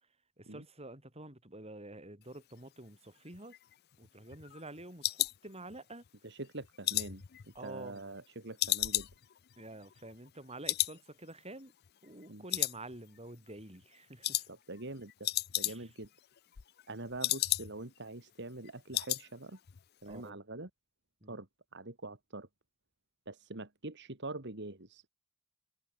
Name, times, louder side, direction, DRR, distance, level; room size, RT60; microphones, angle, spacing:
voice 1, 0.4-3.6 4.0-6.0 7.5-8.0 9.6-11.7 12.0-14.5 15.6-15.9 20.1-20.4 21.2-21.4, right 2 dB, 30° right, 7.3 m, -48 dB
sound 1, 3.3-6.1 6.4-8.2 8.6-10.4 10.6-11.0 11.3-11.4 11.8-12.2 12.5-13.3 13.6-13.8 14.2-14.5 14.8-14.9 15.1-16.1 16.4-18.0 18.3-18.4 18.6-19.3 19.5-19.8 20.1-20.2, left 16 dB, 45° left, 0.5 m, -34 dB
voice 2, 6.2-9.1 12.3-12.4 14.5-15.3 15.6-16.1 16.9-19.6 20.0-20.7 21.3-21.5 21.7-22.5 23.3-25.1, right 2 dB, 50° right, 2.7 m, -44 dB
head